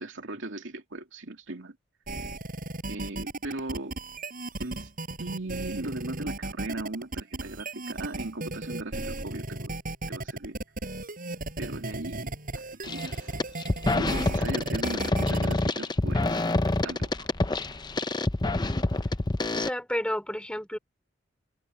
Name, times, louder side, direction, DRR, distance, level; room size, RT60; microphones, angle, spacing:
voice 1, 0.0-1.8 2.9-4.0 4.6-4.9 5.2-9.7 10.1-10.6 11.6-13.3 13.9-16.4 16.8-17.3, right 2 dB, 70° right, 2.8 m, -38 dB
sound 1, 2.1-15.6, right 2 dB, 45° right, 7.8 m, -35 dB
sound 2, 12.8-13.1 13.4-19.7, left 2 dB, 20° left, 0.7 m, -27 dB
voice 2, 19.5-20.8, equal, 5° left, 4.2 m, -31 dB
head